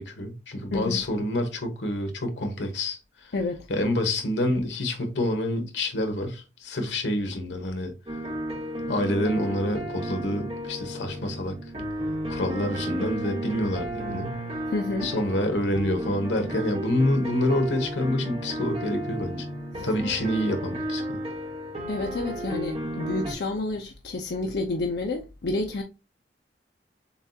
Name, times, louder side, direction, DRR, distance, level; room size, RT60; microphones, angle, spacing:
voice 1, 0.0-3.0 3.7-7.9 8.9-11.5 12.3-14.3 15.0-19.4 19.8-21.2, left 1 dB, 90° left, 1.2 m, -27 dB
voice 2, 3.3-3.7 14.7-15.1 19.7-19.9 21.9-25.8, left 2 dB, 65° left, 0.5 m, -29 dB
sound 1, 8.1-23.3, equal, 35° right, 1.2 m, -33 dB
6.9 x 2.4 x 2.7 m
head